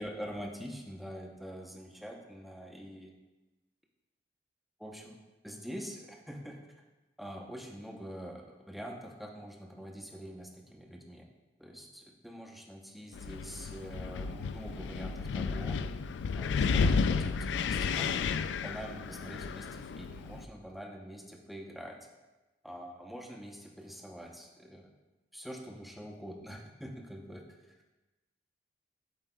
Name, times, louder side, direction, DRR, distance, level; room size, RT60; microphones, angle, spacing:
voice 1, 0.0-3.1 4.8-5.2 5.4-6.6 7.2-11.3 11.6-15.8 16.4-18.3 18.6-22.0 22.6-24.9 25.3-27.8, equal, ahead, 0 dB, 0.7 m, -45 dB
Wind, 13.1-20.5, left 5 dB, 90° left, 0.3 m, -32 dB
8.0 x 7.9 x 2.2 m, 1.1 s
head